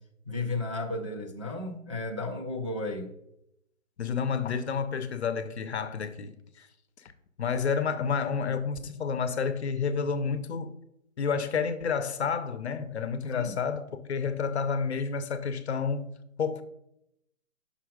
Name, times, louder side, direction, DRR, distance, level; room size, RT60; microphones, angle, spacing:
voice 1, 0.3-3.1 13.3-13.6, left 2 dB, 25° right, 0.4 m, -33 dB
voice 2, 4.0-6.7 7.4-10.7 11.2-16.6, left 6 dB, 55° left, 0.8 m, -30 dB
6.3 x 5.6 x 5.0 m
hypercardioid pair, 160°, 40 cm